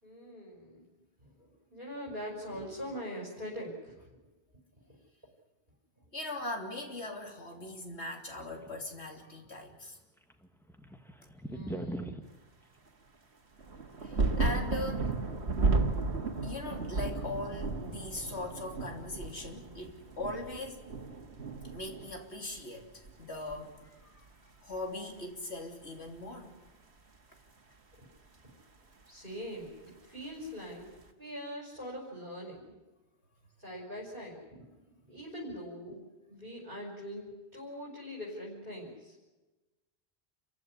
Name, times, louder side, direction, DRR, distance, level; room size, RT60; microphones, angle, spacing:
voice 1, 0.0-0.9 1.2-4.0 4.9-5.0 11.5-12.2 28.0-28.1 28.4-28.5 29.1-29.7 30.0-30.9 31.2-32.7 33.6-34.6 35.0-36.0 36.3-39.1, equal, 50° right, -3 dB, 5.7 m, -42 dB
voice 2, 6.1-10.0 14.0-15.1 16.4-20.9 21.7-24.3 24.6-26.5, left 2 dB, 80° left, 3 dB, 3.6 m, -40 dB
sound 1, 8.6-9.5 9.7-9.8 10.2-12.3, right 1 dB, ahead, 1.7 m, -40 dB
sound 2, 13.6-22.7 22.9-23.8 24.8-24.9, right 3 dB, 75° right, 2.2 m, -33 dB
28.5 x 15.5 x 9.8 m, 1.1 s
omnidirectional pair, 1.1 m